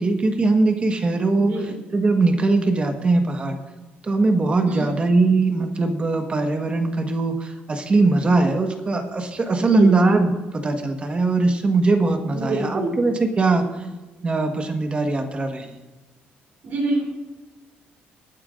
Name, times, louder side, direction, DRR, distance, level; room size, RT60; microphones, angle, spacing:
voice 1, 0.0-1.5 1.9-3.6 4.0-13.6 14.2-15.7, right 3 dB, 30° right, 5 dB, 1.4 m, -20 dB
voice 2, 1.3-1.7 4.6-5.0 9.6-10.0 12.3-12.9 16.6-17.0, right 2 dB, 60° right, -4 dB, 3.3 m, -26 dB
24.0 x 9.1 x 2.6 m, 1.2 s
cardioid pair, 125°, 4 cm